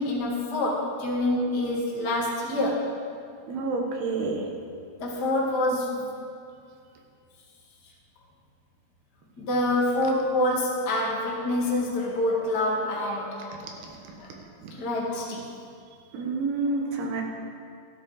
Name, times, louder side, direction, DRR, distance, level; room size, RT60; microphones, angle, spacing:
voice 1, 0.0-2.8 5.0-6.1 9.4-13.9 14.2-14.3 14.7-15.4, left 1 dB, 40° left, -4 dB, 1.6 m, -26 dB
voice 2, 3.5-4.4 14.6-14.7 16.1-17.2, right 3 dB, 80° right, 2 dB, 3.3 m, -28 dB
13.5 x 12.5 x 4.0 m, 2.3 s
omnidirectional pair, 4.5 m